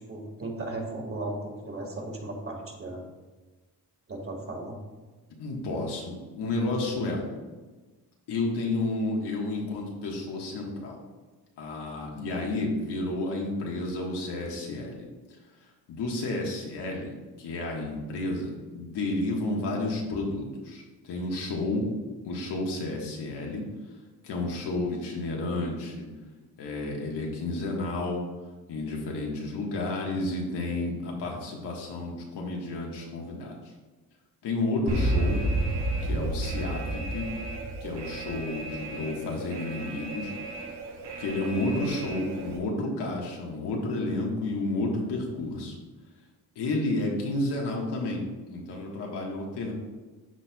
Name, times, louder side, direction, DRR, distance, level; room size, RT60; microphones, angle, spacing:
voice 1, 0.1-3.0 4.1-4.8, right 2 dB, 35° right, 0 dB, 1.8 m, -36 dB
voice 2, 5.4-7.3 8.3-11.0 11.6-15.1 15.9-21.9 22.2-23.6 24.2-26.1 26.6-28.2 28.7-33.6 34.4-35.4 36.0-37.2 37.8-40.3 41.2-45.7 46.5-49.7, left 2 dB, 80° left, -1 dB, 1.5 m, -31 dB
Alarm, 34.9-42.6, right 2 dB, 80° right, 1.5 m, -32 dB
12.5 x 4.3 x 2.3 m, 1.3 s
cardioid pair, 100°, 40 cm